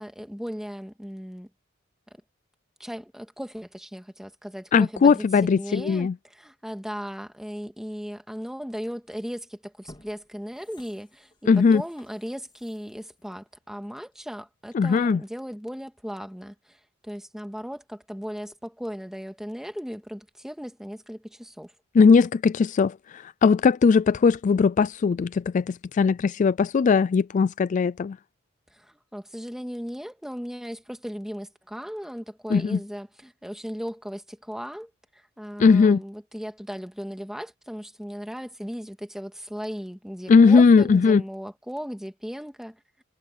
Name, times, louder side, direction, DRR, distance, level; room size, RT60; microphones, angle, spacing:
voice 1, 0.0-1.5 2.8-21.7 28.7-42.8, equal, 5° right, 2.1 m, -37 dB
voice 2, 4.7-6.1 11.5-11.8 14.7-15.2 21.9-28.2 32.5-32.8 35.6-36.0 40.3-41.2, left 5 dB, 40° left, 0.3 m, -19 dB
sound 1, 9.1-9.2 9.7-14.4 14.8-14.9, left 1 dB, 25° left, 2.3 m, -55 dB
head